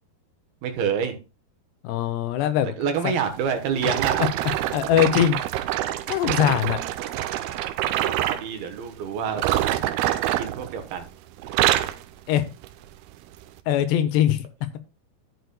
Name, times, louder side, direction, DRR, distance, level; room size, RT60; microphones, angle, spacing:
voice 1, 0.6-1.2 2.6-4.2 8.0-9.4 10.4-11.1, right 7 dB, 70° right, 6 dB, 2.7 m, -27 dB
voice 2, 1.8-2.8 4.7-5.4 6.1-6.8 12.3-12.5 13.7-14.5, left 11 dB, 85° left, 11 dB, 2.7 m, -21 dB
sound 1, 3.8-8.5 9.3-11.1 11.4-12.0 12.6-12.8 13.5-13.6, right 13 dB, 90° right, 2.2 m, -25 dB
12.5 x 8.0 x 2.2 m, 0.29 s
omnidirectional pair, 5.1 m